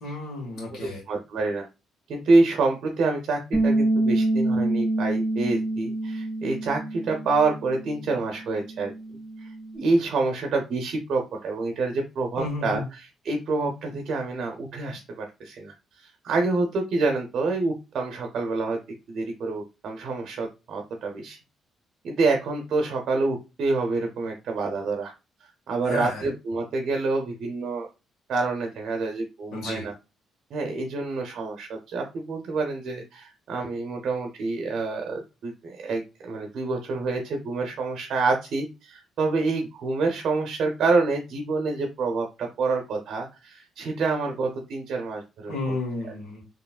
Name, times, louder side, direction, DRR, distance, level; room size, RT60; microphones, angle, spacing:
voice 1, 0.0-1.0 12.4-12.8 25.8-26.2 29.5-29.8 45.5-46.4, left 2 dB, 80° left, -3 dB, 1.6 m, -32 dB
voice 2, 0.7-1.7 2.1-8.9 9.4-18.8 19.1-21.4 22.0-25.1 25.4-27.9 28.3-29.9 30.5-45.7, right 3 dB, 65° right, 2 dB, 0.7 m, -27 dB
Bass guitar, 3.5-9.8, right 2 dB, 40° left, 1.6 m, -27 dB
4.6 x 3.0 x 2.3 m, 0.29 s
cardioid pair, 90°, 0 cm